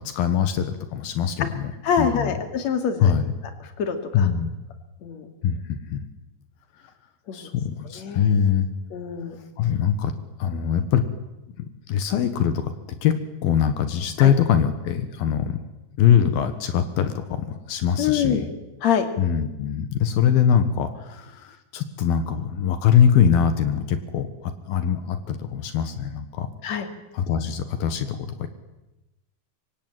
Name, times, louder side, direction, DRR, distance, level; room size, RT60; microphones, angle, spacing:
voice 1, 0.0-1.7 2.0-2.3 3.0-3.2 4.1-4.5 5.4-6.1 7.3-8.7 9.6-10.1 10.4-11.0 11.6-12.7 13.0-13.2 13.4-15.6 16.0-18.5 19.2-26.5 27.1-28.5, left 8 dB, 80° left, 10 dB, 3.2 m, -22 dB
voice 2, 1.8-3.1 3.8-4.3 5.0-5.3 7.3-7.5 8.0-8.4 8.9-9.4 14.2-14.3 18.0-18.4 18.8-19.1 26.6-26.9, left 7 dB, 50° left, 7 dB, 3.5 m, -25 dB
25.5 x 24.5 x 9.1 m, 0.98 s
omnidirectional pair, 4.2 m